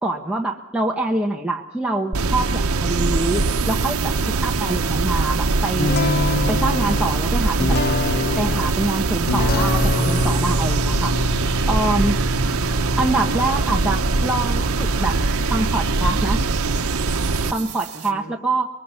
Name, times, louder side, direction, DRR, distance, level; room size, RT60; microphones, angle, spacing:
voice 1, 0.0-4.2 4.4-6.0 6.5-7.8 8.4-11.2 11.7-12.2 13.0-15.2 15.5-16.4 17.5-18.7, right 2 dB, 5° right, 0 dB, 1.2 m, -25 dB
sound 1, 2.1-17.5, right 3 dB, 85° right, 0.9 m, -22 dB
sound 2, 2.8-18.1, right 11 dB, 55° right, 2.4 m, -37 dB
sound 3, 5.8-17.3, left 3 dB, 50° left, 0.8 m, -27 dB
voice 2, 17.0-18.4, right 2 dB, 75° left, -1 dB, 3.7 m, -42 dB
25.0 x 23.0 x 5.6 m, 0.80 s
head